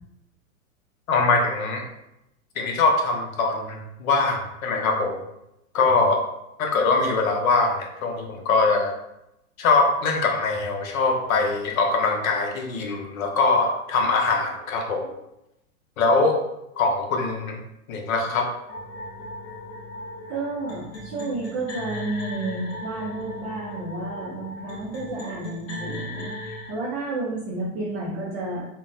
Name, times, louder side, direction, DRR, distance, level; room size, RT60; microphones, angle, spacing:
voice 1, 1.1-1.8 2.6-5.2 5.7-6.2 6.6-8.9 9.6-15.1 16.0-16.4 16.8-17.6 17.9-18.5, left 3 dB, 70° left, 2 dB, 0.8 m, -22 dB
sound 1, 18.7-26.7, left 1 dB, 50° left, 1.1 m, -37 dB
voice 2, 20.3-26.3 26.7-28.7, right 2 dB, 20° right, -5 dB, 0.4 m, -31 dB
3.7 x 2.1 x 2.5 m, 0.87 s
hypercardioid pair, 130°, 43 cm